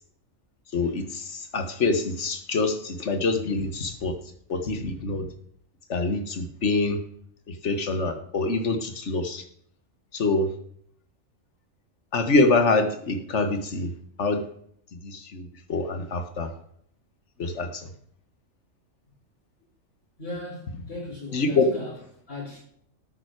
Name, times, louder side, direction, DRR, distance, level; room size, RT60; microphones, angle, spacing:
voice 1, 0.7-4.1 4.5-5.3 5.9-7.0 7.5-9.4 10.1-10.5 12.1-13.9 14.2-14.4 15.0-16.5 17.4-17.9 21.3-21.7, left 3 dB, 60° left, 7 dB, 1.8 m, -25 dB
voice 2, 20.2-22.0 22.3-22.6, left 2 dB, 45° left, -5 dB, 5.2 m, -37 dB
12.5 x 8.9 x 4.8 m, 0.66 s
omnidirectional pair, 1.4 m